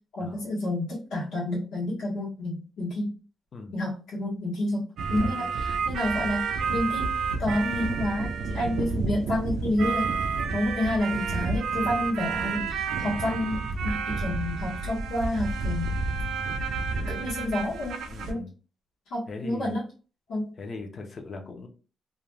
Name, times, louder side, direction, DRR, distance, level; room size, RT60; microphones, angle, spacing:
voice 1, 0.1-3.1 3.7-7.1 7.4-10.1 10.5-15.9 17.1-18.4 19.1-19.8 20.3-20.5, left 1 dB, 75° left, -8 dB, 1.0 m, -29 dB
sound 1, 5.0-18.3, right 4 dB, 70° right, 0.4 m, -30 dB
voice 2, 5.2-5.5 10.4-10.7 17.0-17.3 18.1-18.5 19.3-19.7 20.6-21.7, left 3 dB, 35° left, 4 dB, 0.5 m, -40 dB
2.4 x 2.1 x 3.1 m, 0.36 s
cardioid pair, 160°, 0 cm